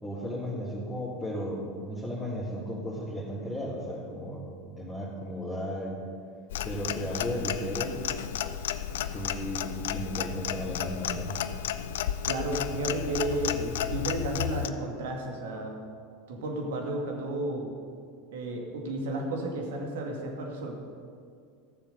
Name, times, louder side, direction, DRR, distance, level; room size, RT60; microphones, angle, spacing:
voice 1, 0.0-6.0 6.6-8.0 9.0-11.3, equal, 10° left, -9 dB, 3.2 m, -35 dB
Clock, 6.5-14.7, left 10 dB, 70° left, 0.5 m, -33 dB
voice 2, 12.3-15.8 16.3-17.7 18.3-20.7, right 1 dB, 70° right, 1 dB, 2.2 m, -32 dB
14.0 x 7.0 x 6.7 m, 2.3 s
hypercardioid pair, 85°, 0 cm